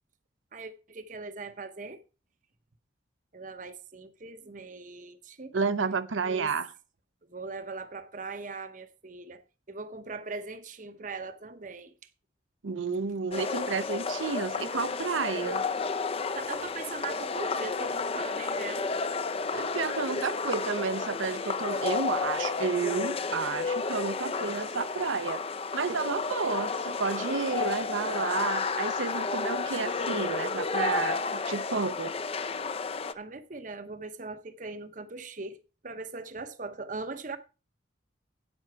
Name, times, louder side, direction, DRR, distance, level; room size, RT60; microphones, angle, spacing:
voice 1, 0.5-2.0 3.3-5.6 6.2-6.6 7.3-11.9 16.3-18.9 33.1-37.4, right 3 dB, 40° right, 0.8 m, -40 dB
voice 2, 5.5-6.7 12.6-15.6 19.5-25.4 25.7-32.1, right 5 dB, 90° right, 0.7 m, -31 dB
sound 1, 13.3-33.1, left 4 dB, 30° left, 0.5 m, -32 dB
9.7 x 8.6 x 4.6 m
head